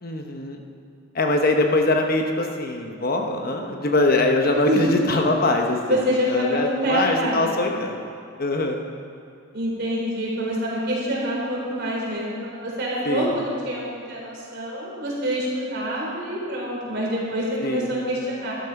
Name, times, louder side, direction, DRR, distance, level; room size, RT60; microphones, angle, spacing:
voice 1, 0.0-0.6 1.1-6.0 6.3-8.0 8.4-8.8 13.1-13.3 17.6-17.9, left 2 dB, 40° left, 3 dB, 0.9 m, -22 dB
voice 2, 4.5-5.2 5.8-7.5 9.5-18.5, equal, 50° right, -4 dB, 4.0 m, -26 dB
12.5 x 11.5 x 5.8 m, 2.5 s
head